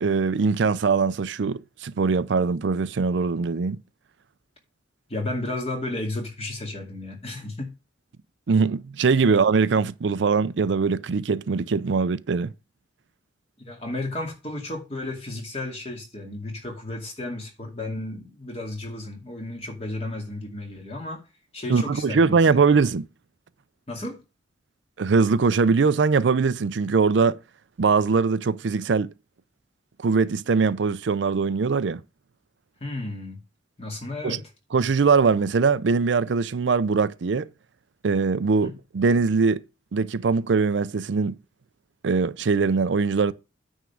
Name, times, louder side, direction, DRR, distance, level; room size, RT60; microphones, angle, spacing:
voice 1, 0.0-3.8 8.5-12.5 21.7-23.0 25.0-27.4 27.8-29.1 30.0-32.0 34.2-34.4 34.7-37.5 38.0-39.6 39.9-41.4 42.0-43.3, right 4 dB, 85° right, 0.5 m, -22 dB
voice 2, 5.1-7.8 9.3-9.4 13.6-21.2 21.5-22.4 23.9-24.2 32.8-33.4 33.8-34.4 38.6-38.7, left 2 dB, 35° left, 2.3 m, -33 dB
9.3 x 3.7 x 7.1 m
head